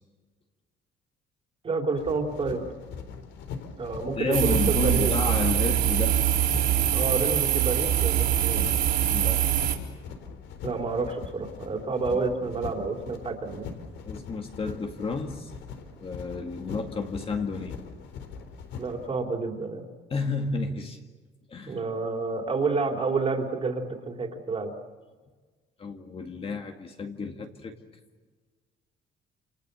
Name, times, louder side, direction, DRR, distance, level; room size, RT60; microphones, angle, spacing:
voice 1, 1.6-2.6 3.8-5.3 6.9-8.6 10.6-13.7 18.8-19.9 21.7-24.7, right 4 dB, 30° right, 3 dB, 3.7 m, -29 dB
sound 1, 2.0-19.1, left 5 dB, 75° left, 4.0 m, -41 dB
voice 2, 4.2-6.2 9.1-9.7 12.1-12.5 14.1-15.5 15.9-17.8 20.1-21.0 21.5-21.8 25.8-27.7, left 4 dB, 30° left, 4 dB, 2.1 m, -31 dB
sound 2, 4.3-9.8, right 11 dB, 55° right, 4.0 m, -24 dB
28.5 x 28.5 x 6.9 m, 1.4 s
cardioid pair, 165°, 20 cm